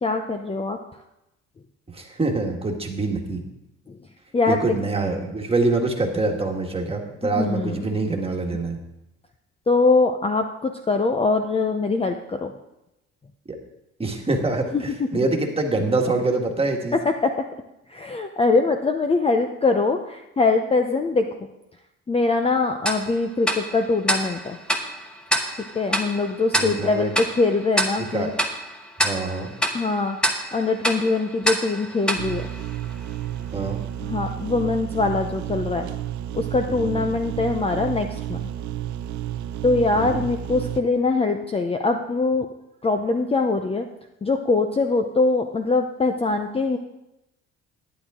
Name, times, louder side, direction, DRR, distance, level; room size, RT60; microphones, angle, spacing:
voice 1, 0.0-0.8 3.9-4.0 4.3-4.6 7.3-7.9 9.7-12.5 14.7-15.3 15.8-15.9 17.0-17.4 17.9-21.3 22.1-24.6 25.7-28.3 29.7-30.2 30.5-32.5 34.0-35.9 36.3-38.4 39.6-42.5 42.8-43.9 44.2-46.8, left 3 dB, 20° left, 5 dB, 0.6 m, -22 dB
voice 2, 1.9-3.4 4.5-8.8 13.5-13.6 14.0-17.0 26.5-27.2 28.1-28.3 29.0-29.5 33.5-33.8 36.7-37.2 39.9-40.2, right 3 dB, 20° right, 2 dB, 1.6 m, -25 dB
Tick-tock, 22.9-33.3, equal, 5° left, 1.1 m, -28 dB
sound 1, 32.2-40.8, right 12 dB, 70° right, 0.7 m, -31 dB
11.5 x 9.9 x 3.7 m, 0.88 s
cardioid pair, 110°, 30 cm